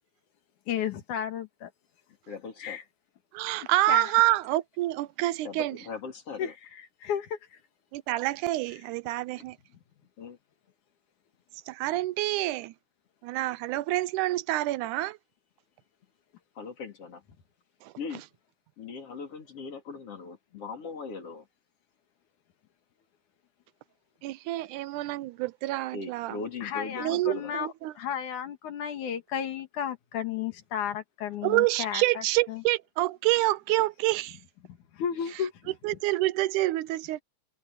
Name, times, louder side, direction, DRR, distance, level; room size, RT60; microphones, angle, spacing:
voice 1, 0.7-1.7 2.6-2.8 3.9-4.1 6.4-6.5 7.0-7.6 26.6-27.7 28.0-32.2 32.5-32.6 34.9-35.7, left 8 dB, 70° left, 3.2 m, -33 dB
voice 2, 2.3-2.8 5.4-6.5 10.2-10.4 16.6-17.2 18.0-18.2 18.8-21.5 25.9-27.5 35.2-35.3, left 4 dB, 45° left, 4.0 m, -39 dB
voice 3, 3.3-5.8 7.9-9.6 11.7-12.7 13.2-15.2 17.8-17.9 24.2-26.3 27.0-27.9 31.4-34.4 35.8-37.2, right 18 dB, 80° right, 2.0 m, -27 dB
omnidirectional pair, 3.6 m